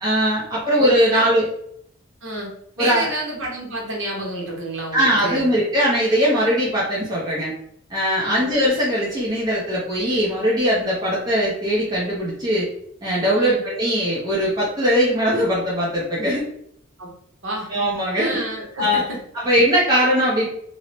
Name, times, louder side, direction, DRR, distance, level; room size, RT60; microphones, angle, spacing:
voice 1, 0.0-1.5 2.8-3.1 4.9-7.5 7.9-12.7 13.0-16.4 17.7-18.4 18.8-19.0 19.3-20.5, equal, 20° right, -7 dB, 0.5 m, -20 dB
voice 2, 2.2-2.5 2.8-5.5 8.2-8.5 13.3-13.6 17.0-17.1 17.4-17.7 18.1-19.2, right 1 dB, 65° right, -2 dB, 0.9 m, -29 dB
2.6 x 2.0 x 3.0 m, 0.71 s
head